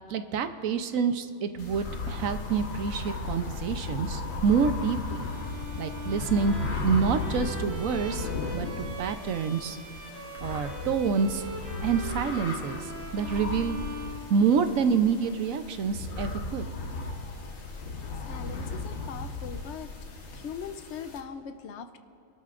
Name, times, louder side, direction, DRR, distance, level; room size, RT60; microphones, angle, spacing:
voice 1, 0.1-5.2 5.8-6.5 6.8-8.3 8.5-9.8 10.4-11.5 11.8-12.8 13.1-13.8 14.3-16.7, right 6 dB, 85° right, 9 dB, 1.2 m, -27 dB
sound 1, 1.6-21.2, left 3 dB, 85° left, 1.8 m, -36 dB
Bowed string instrument, 5.2-14.9, equal, 50° right, 1.4 m, -41 dB
voice 2, 18.1-19.9 20.3-22.0, left 7 dB, 65° left, 9 dB, 1.0 m, -40 dB
28.0 x 12.5 x 2.5 m, 2.7 s
omnidirectional pair, 1.4 m